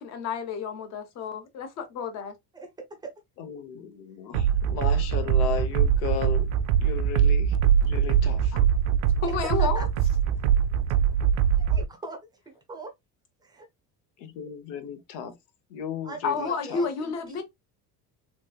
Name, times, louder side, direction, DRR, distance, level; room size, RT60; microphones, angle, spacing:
voice 1, 0.0-2.3 8.5-8.6 9.2-9.9 16.2-17.4, left 5 dB, 40° left, 0.8 m, -30 dB
voice 2, 3.4-6.5 6.8-7.6 7.8-8.5 14.2-15.3 15.7-16.8, left 8 dB, 85° left, 1.0 m, -35 dB
sound 1, 4.3-11.8, right 8 dB, 80° right, 0.5 m, -23 dB
voice 3, 9.4-9.9 11.6-12.2 12.7-12.9 13.4-13.7 16.0-17.4, right 2 dB, 10° right, 0.5 m, -40 dB
3.4 x 3.0 x 2.3 m
cardioid pair, 175°, 40 cm